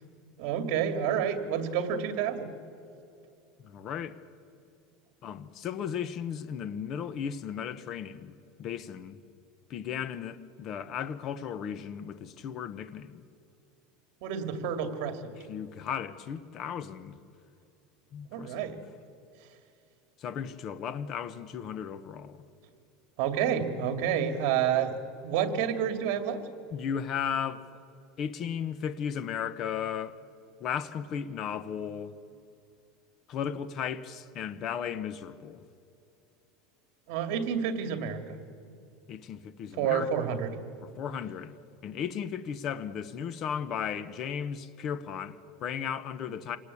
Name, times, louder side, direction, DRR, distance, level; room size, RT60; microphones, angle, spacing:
voice 1, 0.4-2.5 14.2-15.2 18.3-18.8 23.2-25.0 25.2-26.4 37.1-38.2 39.8-40.6, right 8 dB, 60° right, 2.6 m, -29 dB
voice 2, 3.6-4.2 5.2-9.2 9.7-13.2 15.4-17.2 18.1-18.7 20.2-22.4 26.7-27.6 28.2-30.2 30.6-32.2 33.3-35.6 39.1-40.3 40.8-41.5 41.8-46.6, left 8 dB, 40° left, 1.0 m, -35 dB
27.5 x 19.0 x 8.6 m
supercardioid pair, 150°, 0 cm